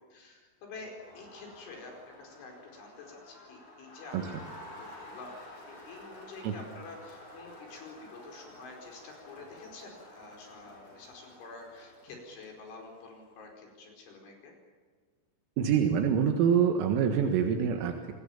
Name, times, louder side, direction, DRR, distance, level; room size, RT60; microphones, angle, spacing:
voice 1, 0.1-4.4 4.6-5.4 5.7-14.5, left 3 dB, 65° left, 1 dB, 7.1 m, -48 dB
Crowd, 0.8-13.3, left 1 dB, 35° left, 6.7 m, -51 dB
voice 2, 15.6-18.1, right 7 dB, 85° right, 4 dB, 4.3 m, -25 dB
27.0 x 20.5 x 7.2 m, 1.5 s
omnidirectional pair, 5.9 m